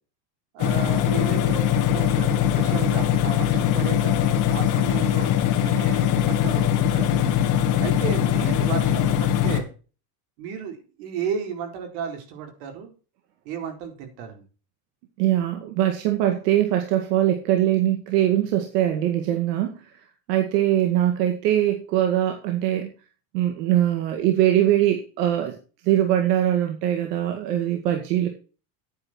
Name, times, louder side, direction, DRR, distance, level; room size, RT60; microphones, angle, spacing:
voice 1, 0.5-7.2 7.8-9.7 10.4-12.9 13.4-14.4, right 7 dB, 65° right, 5 dB, 4.4 m, -34 dB
sound 1, 0.6-9.6, left 10 dB, 40° left, 2.1 m, -21 dB
voice 2, 15.2-19.8 20.3-22.9 23.3-25.6 25.8-28.3, right 12 dB, 85° right, 4 dB, 2.2 m, -22 dB
10.5 x 9.7 x 4.5 m, 0.36 s
cardioid pair, 160°, 47 cm